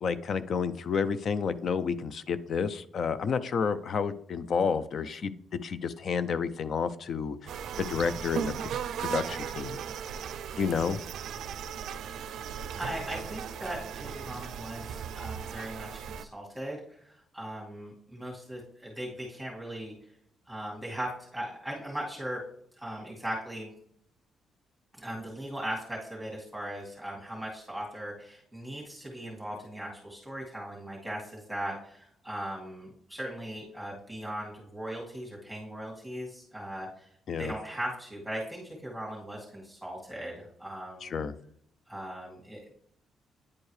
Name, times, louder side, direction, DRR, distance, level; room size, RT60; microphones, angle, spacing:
voice 1, 0.0-7.5 7.8-8.7 9.0-9.8 10.6-11.0 37.3-37.5 41.0-41.3, left 6 dB, 55° left, 14 dB, 0.4 m, -30 dB
sound 1, 7.5-16.3, right 8 dB, 70° right, 0.4 m, -37 dB
voice 2, 12.7-19.9 20.5-22.4 22.8-23.7 24.9-37.1 37.4-41.2 41.9-42.7, right 1 dB, ahead, -4 dB, 2.2 m, -39 dB
9.6 x 4.5 x 3.3 m, 0.69 s
cardioid pair, 100°, 0 cm